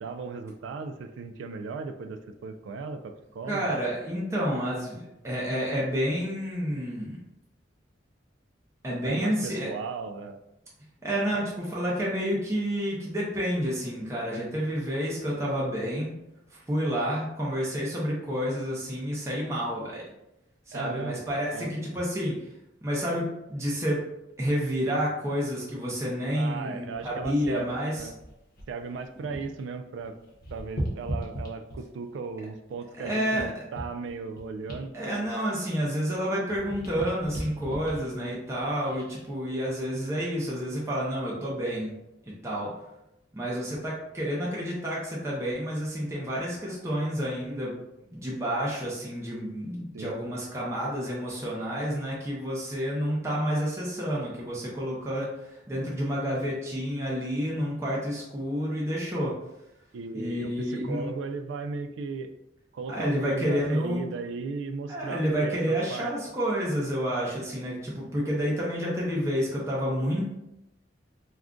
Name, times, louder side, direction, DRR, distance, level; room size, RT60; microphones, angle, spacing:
voice 1, 0.0-3.7 9.0-10.4 11.3-11.4 20.7-21.2 21.5-21.7 26.3-28.1 28.7-30.2 30.5-34.9 49.9-50.1 59.9-62.3 62.7-66.1, right 4 dB, 80° right, 8 dB, 0.3 m, -36 dB
voice 2, 3.5-7.2 8.8-9.7 11.0-16.1 16.5-20.0 20.7-22.4 22.8-24.0 24.4-28.1 33.0-33.5 34.9-41.9 42.3-42.7 43.3-47.8 48.1-59.3 60.1-61.1 62.9-64.1 64.9-70.2, equal, 15° right, -5 dB, 0.6 m, -29 dB
sound 1, 26.9-29.6 29.9-32.1 32.6-36.2 36.4-39.2 39.8-40.0, equal, 50° left, 0.8 m, -39 dB
2.4 x 2.2 x 3.6 m, 0.88 s
head